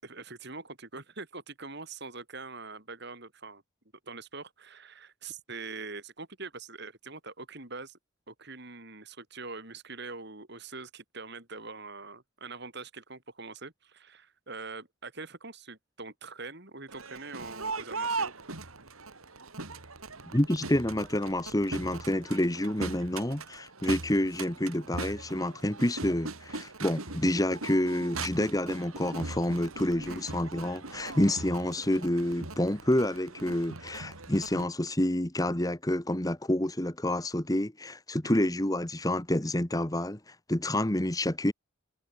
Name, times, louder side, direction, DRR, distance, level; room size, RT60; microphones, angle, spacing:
voice 1, 0.0-3.6 4.1-8.0 8.3-18.3 30.1-30.3 38.2-38.6, right 3 dB, 50° right, 4.3 m, -43 dB
Crowd, 16.9-34.6, right 3 dB, 85° right, 4.0 m, -40 dB
voice 2, 20.3-41.5, left 1 dB, 15° left, 1.4 m, -28 dB
head